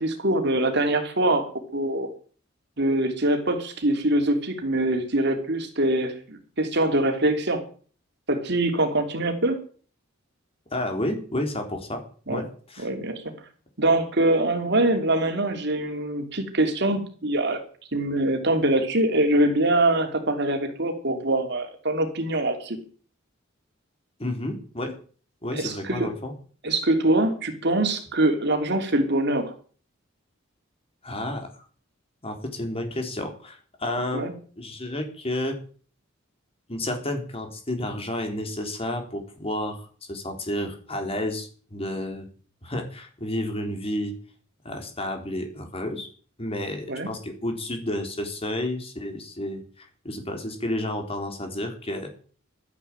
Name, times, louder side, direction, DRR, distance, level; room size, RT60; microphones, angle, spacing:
voice 1, 0.0-2.1 2.8-7.6 8.3-9.6 12.3-12.4 12.8-13.3 13.8-17.6 17.9-22.8 25.5-26.1 26.6-29.5 34.1-34.3 46.9-47.1, right 1 dB, 60° right, 5 dB, 3.3 m, -23 dB
voice 2, 10.7-12.0 12.3-12.9 24.2-25.0 25.4-26.3 31.0-31.7 32.2-34.3 34.6-35.6 36.7-42.3 42.6-44.1 44.6-46.1 46.4-52.1, left 1 dB, 30° left, 5 dB, 3.8 m, -31 dB
13.0 x 11.0 x 9.0 m, 0.43 s
head